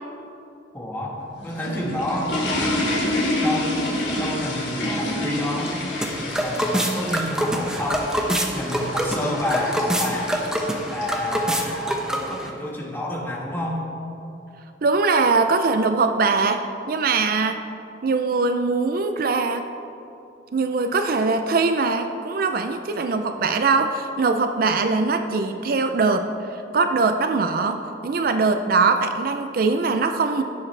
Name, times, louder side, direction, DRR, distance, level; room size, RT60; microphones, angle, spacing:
voice 1, 0.7-2.4 3.4-3.7 4.2-5.7 6.1-8.2 8.5-10.3 10.9-13.8, left 1 dB, 10° left, -2 dB, 1.4 m, -29 dB
sound 1, 1.2-11.5, left 1 dB, 75° left, 2.5 m, -28 dB
sound 2, 5.4-12.5, equal, 5° right, 0.8 m, -26 dB
voice 2, 14.8-17.6 18.0-19.7 20.5-30.4, right 4 dB, 50° right, 7 dB, 0.4 m, -22 dB
17.0 x 7.4 x 3.3 m, 2.7 s
head